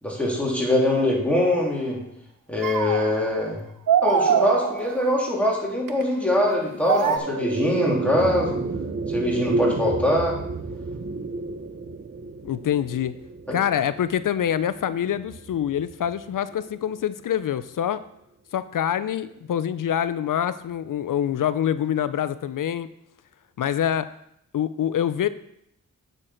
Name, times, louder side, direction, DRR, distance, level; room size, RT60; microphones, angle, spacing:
voice 1, 0.0-2.0 2.5-3.6 4.0-8.6 9.1-10.4 13.5-13.6, left 1 dB, 5° left, -4 dB, 3.1 m, -23 dB
sound 1, 1.3-1.6 2.6-3.5 3.9-5.2 5.9-6.0 6.9-7.2, right 7 dB, 70° right, 0.8 m, -23 dB
sound 2, 6.5-17.0, right 3 dB, 40° right, 0.9 m, -31 dB
voice 2, 12.4-13.1 13.5-18.0 18.5-22.9 23.6-24.1 24.5-25.3, left 9 dB, 70° left, 15 dB, 0.5 m, -25 dB
8.6 x 6.5 x 4.3 m, 0.76 s
cardioid pair, 60°, 33 cm